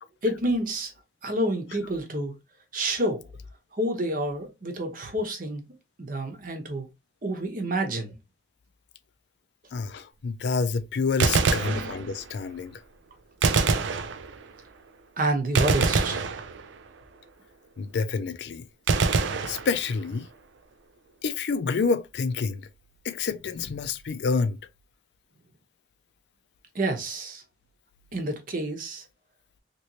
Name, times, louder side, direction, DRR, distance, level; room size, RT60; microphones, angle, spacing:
voice 1, 0.2-0.9 1.2-2.3 2.7-3.3 3.7-5.6 6.0-6.9 7.2-8.2 11.6-11.9 15.2-16.3 26.7-27.4 28.1-29.0, right 1 dB, 50° right, 0.9 m, -28 dB
voice 2, 9.7-12.7 17.8-18.6 19.5-20.3 21.2-22.6 23.0-24.6, left 4 dB, 65° left, 0.4 m, -28 dB
Gunshot gunfire, 11.1-12.4 13.4-14.6 15.6-17.0 18.9-20.2, right 4 dB, 85° right, 0.5 m, -25 dB
3.0 x 3.0 x 2.7 m
head